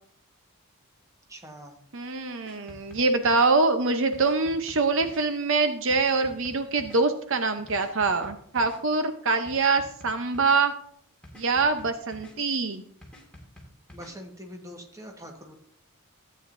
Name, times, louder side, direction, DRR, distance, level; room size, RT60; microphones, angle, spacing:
voice 1, 1.3-1.8 13.9-15.5, equal, 15° right, 3 dB, 1.2 m, -43 dB
voice 2, 1.9-10.7 11.4-12.8, right 3 dB, 60° right, 8 dB, 0.7 m, -24 dB
sound 1, 2.5-3.5 4.1-5.2 5.9-7.0 7.7-8.8 9.5-10.6 11.2-12.3 13.0-14.1, equal, 5° left, 2.0 m, -48 dB
13.5 x 8.6 x 2.6 m, 0.64 s
head